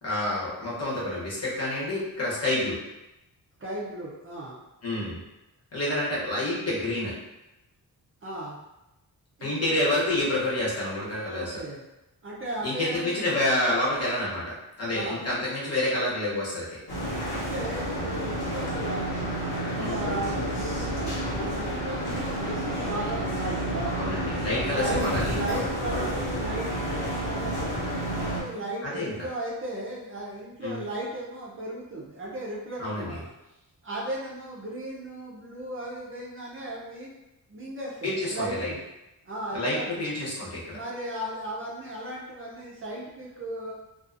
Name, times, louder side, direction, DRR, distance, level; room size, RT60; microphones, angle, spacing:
voice 1, 0.0-2.8 4.8-5.2 5.7-7.1 9.4-11.5 12.6-16.8 19.8-20.0 24.0-25.6 28.8-29.1 30.6-30.8 32.8-33.2 38.0-38.7 39.5-40.8, left 1 dB, 40° left, -7 dB, 0.9 m, -28 dB
voice 2, 3.6-4.6 8.2-8.6 9.4-10.0 11.2-11.8 12.2-13.7 14.9-15.2 17.3-19.1 19.7-24.0 24.6-27.7 28.1-33.3 33.8-37.1 37.5-38.8 39.3-40.1 40.7-43.7, right 1 dB, 35° right, -5 dB, 0.5 m, -36 dB
sound 1, 16.9-28.4, right 1 dB, 90° left, 1.0 m, -30 dB
2.5 x 2.4 x 2.5 m, 0.95 s
wide cardioid pair, 140°, 38 cm